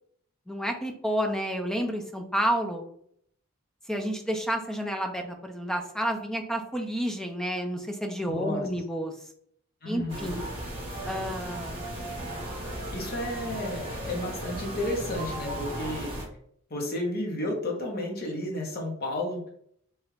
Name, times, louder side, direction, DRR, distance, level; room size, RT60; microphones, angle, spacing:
voice 1, 0.5-2.8 3.9-9.1 9.9-10.4 11.1-11.8, equal, 5° left, 3 dB, 0.3 m, -30 dB
voice 2, 8.2-8.6 9.8-10.4 12.9-16.3 16.7-19.5, left 1 dB, 45° left, 0 dB, 0.9 m, -32 dB
sound 1, 10.1-16.3, right 1 dB, 25° right, 1.0 m, -36 dB
3.0 x 2.4 x 3.1 m, 0.67 s
head